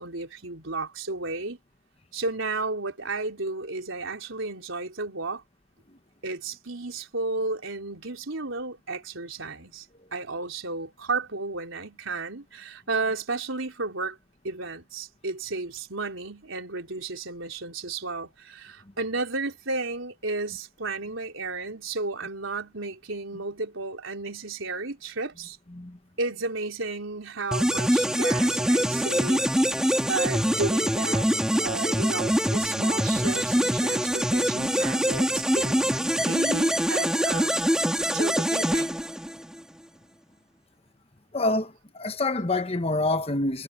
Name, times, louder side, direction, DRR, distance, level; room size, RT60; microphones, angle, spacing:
voice 1, 0.0-1.6 2.1-5.4 6.2-9.9 10.1-14.2 14.4-25.6 26.2-29.4 30.1-31.3 31.6-37.5 38.1-39.0, right 3 dB, 80° right, 3.8 m, -33 dB
sound 1, 27.5-39.6, equal, 5° right, 2.4 m, -24 dB
voice 2, 41.3-43.6, left 2 dB, 30° left, 1.2 m, -26 dB
head